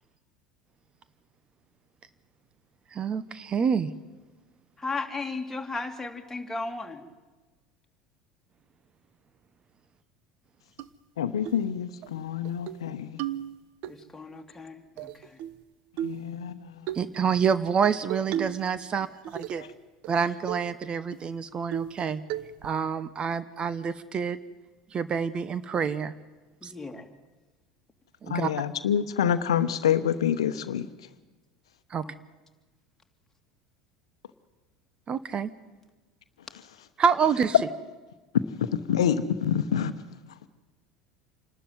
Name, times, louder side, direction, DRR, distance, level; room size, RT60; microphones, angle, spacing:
voice 1, 2.9-3.9 16.9-19.6 20.1-22.2 22.6-24.4 24.9-26.1 26.6-26.7 28.2-28.5 31.9-32.0 35.1-35.5 37.0-37.6, right 6 dB, 35° right, 1.0 m, -27 dB
voice 2, 4.8-7.1 13.9-15.1 26.6-27.1 32.0-32.1, left 3 dB, 10° left, 2.8 m, -35 dB
sound 1, 10.8-10.9 11.4-11.6 12.0-12.1 12.4-12.8 13.2-13.9 15.0-15.6 16.0-16.3 16.9-17.1 18.1-18.7 19.0-19.7 20.0-20.1 20.5-20.7 21.1-21.2 21.7-22.0 22.3-22.7, right 11 dB, 60° right, 0.9 m, -34 dB
voice 3, 11.2-13.2 16.0-16.9 28.3-30.9 36.5-36.6 38.6-39.9, left 9 dB, 80° left, 0.9 m, -27 dB
27.0 x 12.5 x 9.4 m
hypercardioid pair, 75°, 3 cm